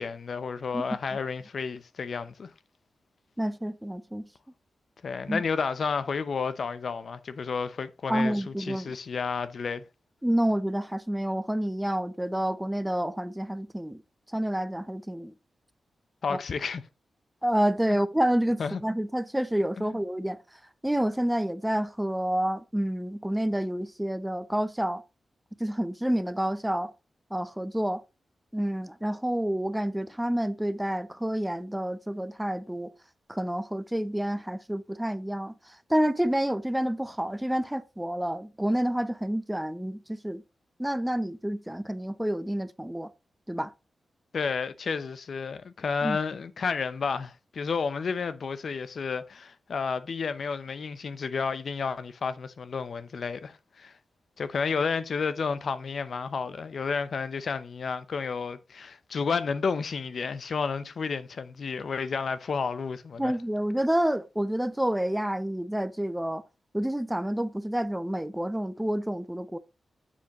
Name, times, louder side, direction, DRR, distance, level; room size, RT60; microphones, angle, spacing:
voice 1, 0.0-2.5 5.0-9.8 16.2-16.8 17.9-18.0 18.6-18.8 19.8-20.0 44.3-53.9 54.4-63.3, left 5 dB, 65° left, 0.7 m, -31 dB
voice 2, 3.4-4.2 5.3-5.4 8.1-8.9 10.2-14.0 14.3-15.3 16.3-16.4 17.4-20.4 20.8-25.0 25.6-26.9 27.3-28.0 28.5-32.9 33.3-35.5 35.9-40.4 40.8-43.1 43.5-43.7 46.0-46.2 63.2-66.4 66.7-69.6, right 1 dB, 5° right, 0.6 m, -28 dB
7.2 x 7.1 x 3.0 m
cardioid pair, 80°, 0 cm